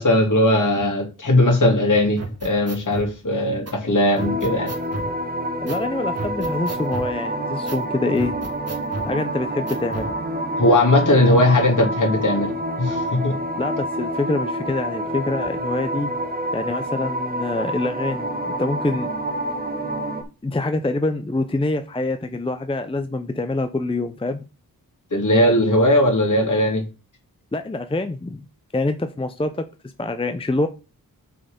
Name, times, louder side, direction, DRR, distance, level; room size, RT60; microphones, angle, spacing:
voice 1, 0.0-4.7 10.6-13.4 25.1-26.8, left 1 dB, 55° left, 0 dB, 2.9 m, -18 dB
sound 1, 2.2-3.1 3.7-3.8 4.2-5.1 5.7-5.9 6.2-7.1 7.7-7.8 8.2-9.1 9.7-10.1, right 2 dB, 40° right, 1.5 m, -32 dB
sound 2, 4.2-20.2, right 1 dB, 25° right, 1.4 m, -28 dB
voice 2, 5.6-8.4 9.0-10.1 13.6-16.1 16.5-19.1 20.4-24.4 27.5-28.4 28.7-29.7 30.0-30.7, left 2 dB, 15° left, 8 dB, 0.6 m, -25 dB
7.7 x 4.2 x 5.2 m, 0.30 s
wide cardioid pair, 110°, 36 cm